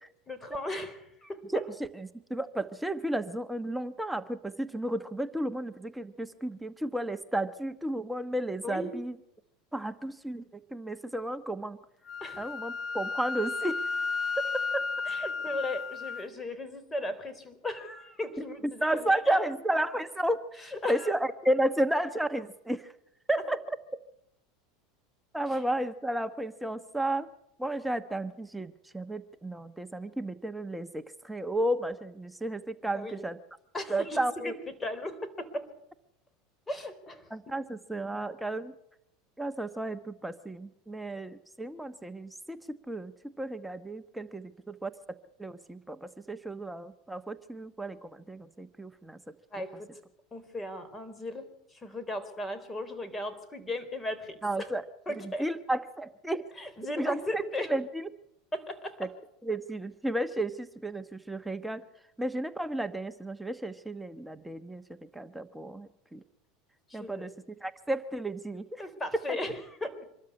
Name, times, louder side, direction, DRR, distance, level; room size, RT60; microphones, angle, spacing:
voice 1, 0.3-1.4 8.6-8.9 12.2-12.5 15.0-19.5 20.6-21.1 25.5-25.6 32.9-33.2 33.7-35.7 36.7-37.3 49.5-49.9 50.3-54.7 55.1-55.4 56.5-57.7 58.5-59.0 66.9-67.3 68.8-70.1, left 1 dB, 15° left, 11 dB, 4.0 m, -37 dB
voice 2, 1.5-9.1 9.7-10.4 10.7-11.8 12.4-13.8 14.4-14.5 14.7-14.8 18.8-22.9 23.3-23.6 25.3-27.3 27.6-33.4 33.9-34.5 37.3-38.7 39.4-43.1 43.4-44.9 45.4-49.2 54.4-54.8 55.2-56.4 57.0-57.4 57.7-58.1 59.0-59.1 59.4-61.8 62.2-66.2 66.9-67.3 67.6-68.8 69.1-69.2, right 1 dB, 5° right, 10 dB, 1.1 m, -32 dB
Wind instrument woodwind instrument, 12.1-16.2, left 4 dB, 35° left, 0.9 m, -33 dB
25.5 x 13.0 x 9.7 m, 0.78 s
supercardioid pair, 105°, 0 cm